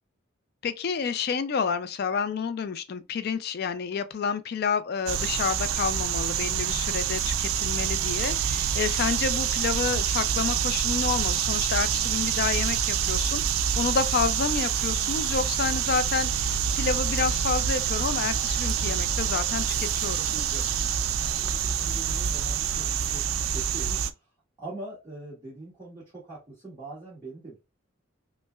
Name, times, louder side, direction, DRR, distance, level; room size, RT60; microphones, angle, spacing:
voice 1, 0.6-20.9, left 5 dB, 50° left, 0.3 m, -29 dB
sound 1, 5.1-24.1, right 8 dB, 80° right, 0.4 m, -27 dB
voice 2, 21.2-22.8 23.1-24.2 24.6-27.6, right 2 dB, 15° right, 1.5 m, -42 dB
5.3 x 2.1 x 2.3 m
head